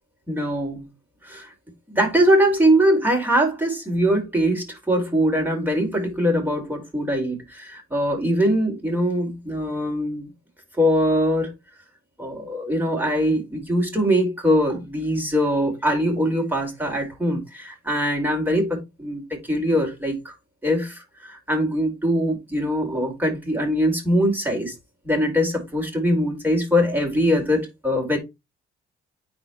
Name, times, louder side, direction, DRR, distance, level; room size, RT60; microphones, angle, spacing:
voice 1, 0.3-0.9 1.2-1.5 1.9-10.3 10.8-11.5 12.2-19.2 19.5-20.3 20.6-24.7 25.0-28.2, equal, 10° right, 4.7 m, -22 dB
9.8 x 4.5 x 3.0 m
cardioid pair, 90°, 20 cm